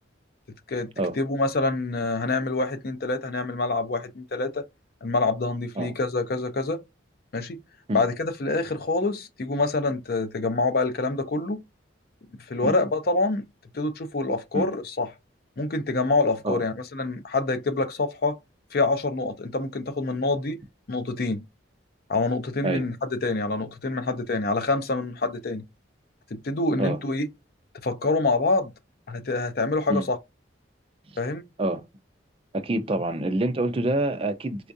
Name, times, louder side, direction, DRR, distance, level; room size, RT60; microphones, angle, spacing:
voice 1, 1.1-4.6 5.0-6.8 7.3-7.6 7.9-11.6 12.5-13.5 13.7-15.1 15.6-18.4 18.7-20.6 20.9-21.4 22.1-25.6 26.3-27.3 27.8-28.7 29.1-30.2 31.2-31.4, left 3 dB, 50° left, 0.5 m, -26 dB
voice 2, 32.5-34.7, right 1 dB, 30° right, 0.4 m, -26 dB
4.3 x 2.3 x 2.6 m
head